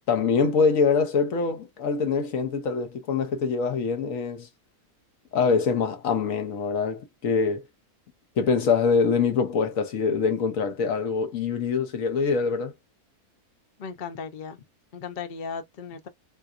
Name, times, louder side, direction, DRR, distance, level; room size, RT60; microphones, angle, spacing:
voice 1, 0.1-4.5 5.3-7.6 8.4-12.7, left 5 dB, 65° left, 1.1 m, -24 dB
voice 2, 13.8-14.6 14.9-16.1, left 6 dB, 50° left, 0.6 m, -36 dB
3.8 x 2.7 x 2.4 m
omnidirectional pair, 1.6 m